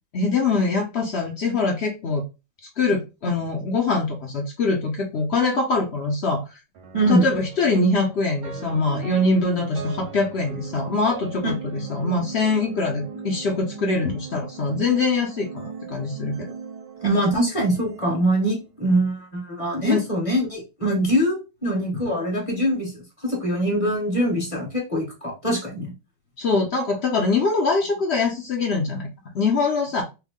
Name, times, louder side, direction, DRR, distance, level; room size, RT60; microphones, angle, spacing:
voice 1, 0.1-2.2 2.8-6.4 7.1-16.5 19.9-20.0 26.4-29.1 29.3-30.0, left 3 dB, 65° left, 2 dB, 0.6 m, -23 dB
sound 1, 6.7-19.0, right 5 dB, 90° right, 1.4 m, -39 dB
voice 2, 17.0-25.9, right 1 dB, 20° left, -2 dB, 1.0 m, -23 dB
3.5 x 2.1 x 3.5 m, 0.27 s
omnidirectional pair, 1.8 m